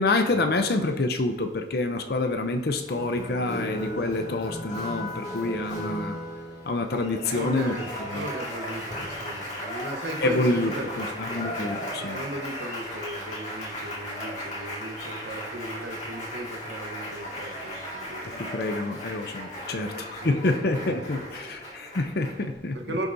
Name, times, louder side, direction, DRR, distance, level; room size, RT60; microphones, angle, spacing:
voice 1, 0.0-6.2 6.6-7.7 8.1-8.2 10.2-12.2 18.3-22.8, left 2 dB, 55° left, 0.6 m, -27 dB
Applause, 2.9-22.5, equal, 40° left, 2.1 m, -36 dB
voice 2, 7.3-7.9 8.1-11.4 12.0-18.4 19.5-21.5 22.7-23.1, right 1 dB, 65° right, 1.1 m, -37 dB
18.0 x 6.5 x 2.7 m
head